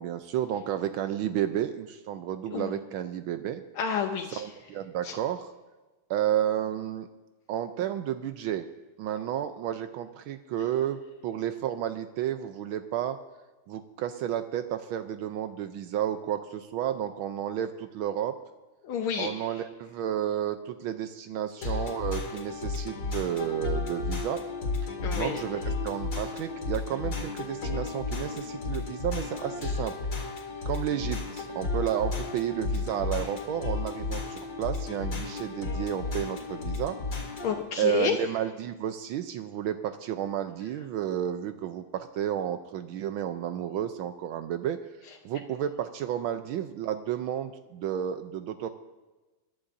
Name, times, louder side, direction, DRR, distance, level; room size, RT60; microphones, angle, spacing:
voice 1, 0.0-3.6 4.3-5.5 6.1-7.1 7.5-8.6 9.0-13.2 13.7-18.3 19.2-24.4 25.2-29.9 30.7-37.0 37.8-44.8 45.2-48.7, right 10 dB, 80° right, 9 dB, 1.4 m, -31 dB
voice 2, 3.8-4.4 5.0-5.1 18.8-19.3 25.0-25.4 37.4-38.2, left 7 dB, 80° left, 2 dB, 1.7 m, -29 dB
sound 1, 21.6-37.6, left 3 dB, 45° left, 2.7 m, -33 dB
22.5 x 11.5 x 2.6 m, 1.2 s
omnidirectional pair, 2.3 m